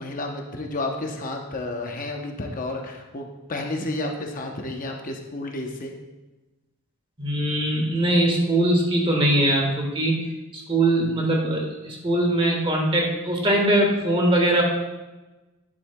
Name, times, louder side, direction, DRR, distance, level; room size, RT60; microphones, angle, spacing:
voice 1, 0.0-5.9, left 2 dB, 40° left, 2 dB, 0.8 m, -31 dB
voice 2, 7.2-10.2 10.5-14.6, right 1 dB, 25° right, 0 dB, 1.3 m, -21 dB
10.0 x 8.2 x 2.2 m, 1.1 s
head